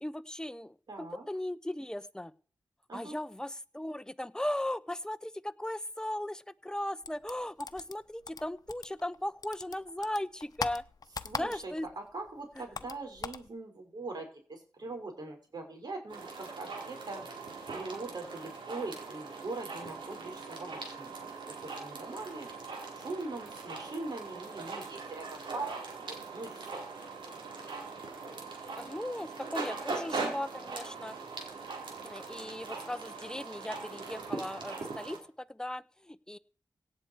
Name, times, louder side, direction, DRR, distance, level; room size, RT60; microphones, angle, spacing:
voice 1, 0.0-2.3 2.9-10.8 11.4-11.9 12.6-12.7 28.7-31.2 32.0-36.4, left 1 dB, 10° left, 13 dB, 0.8 m, -37 dB
voice 2, 0.9-1.3 2.9-3.2 11.2-22.5 22.9-26.8, right 3 dB, 60° right, 2 dB, 5.9 m, -42 dB
sound 1, 7.0-9.2 9.4-11.9 12.2-13.5, left 4 dB, 50° left, 0.9 m, -40 dB
sound 2, 16.1-35.2, right 4 dB, 85° right, 4.6 m, -41 dB
17.5 x 8.1 x 4.8 m, 0.43 s
cardioid pair, 65°, 8 cm